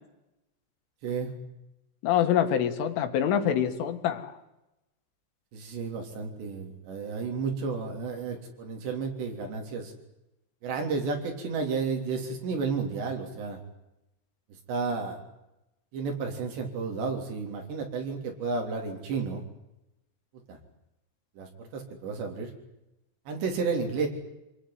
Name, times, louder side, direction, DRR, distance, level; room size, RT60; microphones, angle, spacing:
voice 1, 2.0-4.4, left 9 dB, 80° left, 7 dB, 4.2 m, -25 dB
voice 2, 5.5-9.9 10.6-13.6 14.7-15.2 15.9-19.4 20.5-20.6 21.4-22.5 23.3-24.1, right 4 dB, 65° right, 2 dB, 5.6 m, -32 dB
25.5 x 19.5 x 9.6 m, 0.91 s
omnidirectional pair, 5.6 m